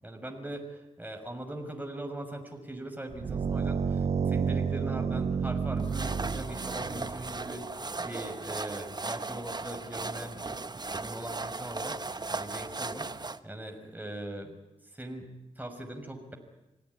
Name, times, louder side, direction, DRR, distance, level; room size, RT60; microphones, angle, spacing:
voice 1, 0.0-7.6 8.0-11.9 12.3-14.5 14.9-16.3, right 1 dB, 15° right, 3 dB, 6.2 m, -40 dB
sound 1, 3.1-7.5, right 6 dB, 55° right, 0.8 m, -30 dB
sound 2, 5.8-13.4, right 3 dB, 35° right, 1.2 m, -37 dB
27.0 x 16.5 x 9.8 m, 0.98 s
cardioid pair, 50°, 13 cm